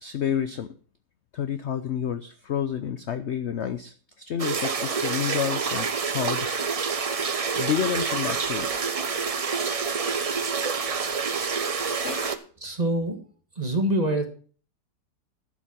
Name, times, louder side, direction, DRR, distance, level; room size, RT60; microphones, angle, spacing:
voice 1, 0.0-0.7 1.3-6.5 7.3-8.7 12.0-12.4, left 9 dB, 60° left, 10 dB, 0.7 m, -30 dB
sound 1, 4.4-12.4, right 5 dB, 70° right, 0.3 m, -27 dB
voice 2, 12.6-13.2 13.6-14.3, right 1 dB, 25° right, 5 dB, 1.5 m, -25 dB
11.5 x 7.3 x 5.9 m, 0.42 s
omnidirectional pair, 1.8 m